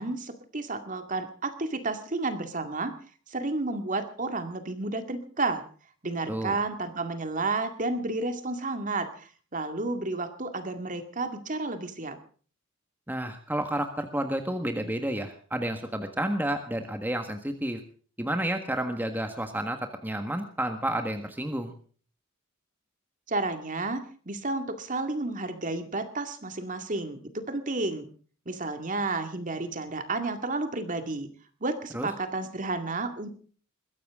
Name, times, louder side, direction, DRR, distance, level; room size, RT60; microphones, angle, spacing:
voice 1, 0.0-2.9 3.3-5.6 6.0-12.2 23.3-28.1 28.5-31.3 31.6-33.3, right 3 dB, 40° right, 8 dB, 2.1 m, -31 dB
voice 2, 13.1-17.8 18.2-21.7 31.9-32.1, right 1 dB, 10° right, 6 dB, 1.6 m, -30 dB
21.5 x 15.5 x 3.7 m, 0.42 s
head